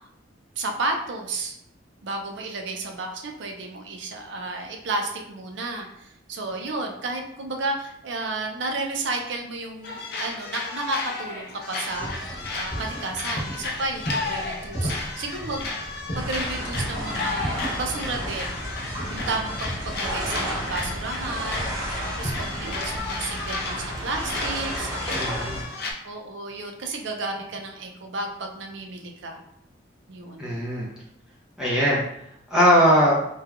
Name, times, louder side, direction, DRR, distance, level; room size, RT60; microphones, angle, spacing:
voice 1, 0.6-1.5 2.0-15.8 16.1-18.6 19.1-21.6 22.0-25.1 25.3-25.6 26.0-29.4 30.1-30.5, right 2 dB, 70° right, 3 dB, 0.5 m, -32 dB
sound 1, 9.8-25.9, left 3 dB, 50° left, 0.3 m, -33 dB
sound 2, 11.9-23.0, equal, 75° left, 1.0 m, -36 dB
sound 3, 16.2-25.6, equal, 20° right, 0.9 m, -33 dB
voice 2, 25.1-25.6 30.4-30.9 31.6-32.0 32.5-33.1, equal, 5° right, -7 dB, 0.5 m, -20 dB
3.2 x 2.2 x 2.3 m, 0.76 s
head